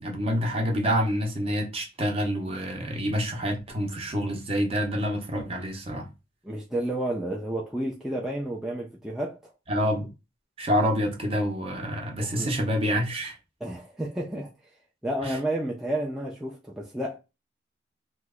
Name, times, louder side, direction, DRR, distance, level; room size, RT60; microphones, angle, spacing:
voice 1, 0.0-6.1 9.7-10.1 10.6-13.4 15.3-15.4, equal, 30° right, 0.7 m, -27 dB
voice 2, 6.4-9.5 12.2-12.5 13.6-14.5 15.0-17.2, right 1 dB, 5° right, 0.4 m, -31 dB
2.9 x 2.1 x 3.5 m
head